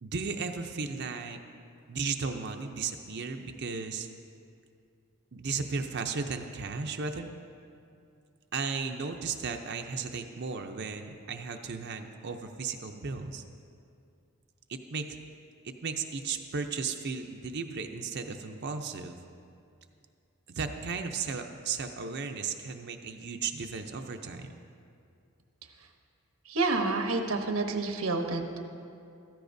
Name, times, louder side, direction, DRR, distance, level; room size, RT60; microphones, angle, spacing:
voice 1, 0.0-1.4 1.9-4.1 5.3-7.3 8.5-13.4 14.7-15.1 15.6-19.2 20.5-24.5, right 5 dB, 55° right, 5 dB, 0.6 m, -35 dB
voice 2, 26.5-28.6, right 3 dB, 85° right, 4 dB, 1.0 m, -29 dB
15.0 x 14.0 x 2.7 m, 2.5 s
head